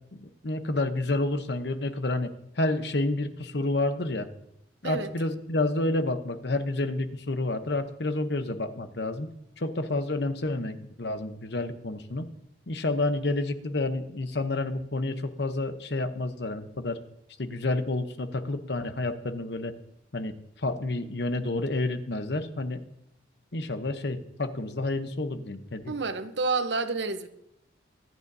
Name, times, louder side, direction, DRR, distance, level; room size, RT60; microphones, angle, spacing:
voice 1, 0.1-4.3 4.8-9.3 9.6-12.2 12.7-17.0 17.4-19.7 20.1-20.3 20.6-22.8 23.5-26.0, left 2 dB, 65° left, 0.9 m, -29 dB
voice 2, 25.9-27.3, right 3 dB, 70° right, 0.9 m, -29 dB
23.0 x 9.3 x 2.7 m
head